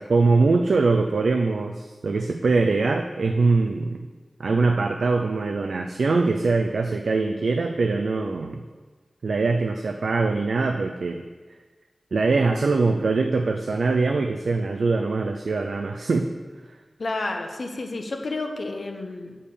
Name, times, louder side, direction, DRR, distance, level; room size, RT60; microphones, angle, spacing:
voice 1, 0.0-4.1 4.4-8.6 9.2-11.2 12.1-16.3, right 3 dB, 80° right, 4 dB, 0.4 m, -22 dB
voice 2, 17.0-19.4, left 2 dB, 65° left, 4 dB, 0.9 m, -30 dB
6.5 x 5.5 x 6.8 m, 1.4 s
wide cardioid pair, 85°, 0 cm